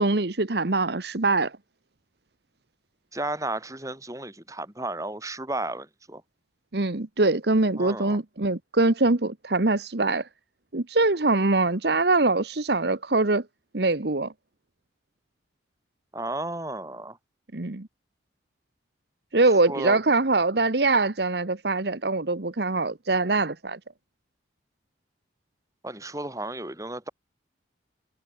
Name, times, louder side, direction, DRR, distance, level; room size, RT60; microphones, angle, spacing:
voice 1, 0.0-1.6 6.7-10.3 10.7-13.4 13.7-14.3 17.5-17.9 19.3-23.8, right 3 dB, 60° right, 1.2 m, -23 dB
voice 2, 3.1-6.2 7.8-8.2 16.1-17.2 19.7-20.0 25.8-27.1, right 2 dB, 15° right, 6.0 m, -33 dB
head